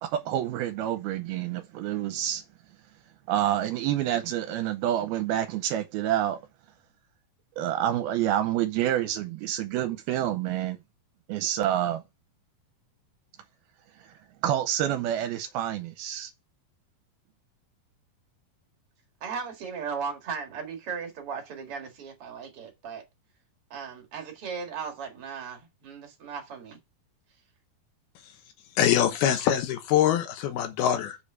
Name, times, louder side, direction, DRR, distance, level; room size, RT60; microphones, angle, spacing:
voice 1, 0.0-2.4 3.3-6.4 7.6-10.8 11.3-12.0 14.0-14.1 14.4-16.3, right 12 dB, 85° right, 2.6 m, -28 dB
voice 2, 19.2-23.0 23.7-26.8, right 6 dB, 45° right, 2.2 m, -37 dB
voice 3, 28.8-31.2, left 10 dB, 80° left, 3.0 m, -24 dB
6.9 x 5.2 x 5.6 m
omnidirectional pair, 4.5 m